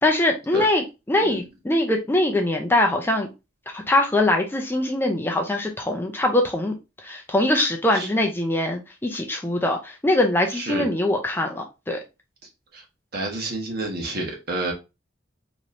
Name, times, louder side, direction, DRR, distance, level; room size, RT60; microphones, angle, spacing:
voice 1, 0.0-3.3 3.7-6.8 7.0-12.0, left 1 dB, 10° left, 0.5 m, -22 dB
voice 2, 13.1-14.7, right 2 dB, 50° right, 1.3 m, -29 dB
4.6 x 3.0 x 2.6 m
head